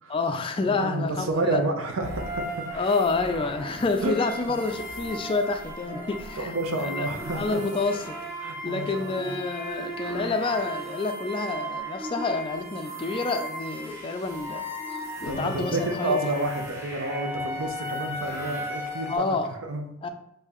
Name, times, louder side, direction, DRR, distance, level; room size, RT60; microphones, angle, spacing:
voice 1, 0.1-1.6 2.7-7.1 7.3-16.2 19.1-19.5 20.0-20.1, left 3 dB, 25° left, 7 dB, 0.3 m, -28 dB
voice 2, 0.7-2.5 4.0-4.1 6.4-7.6 8.4-9.4 15.3-19.4 19.6-20.1, right 2 dB, 80° right, 4 dB, 0.7 m, -29 dB
sound 1, 2.0-19.2, equal, 15° right, 0.8 m, -36 dB
5.5 x 2.7 x 3.0 m, 0.79 s
head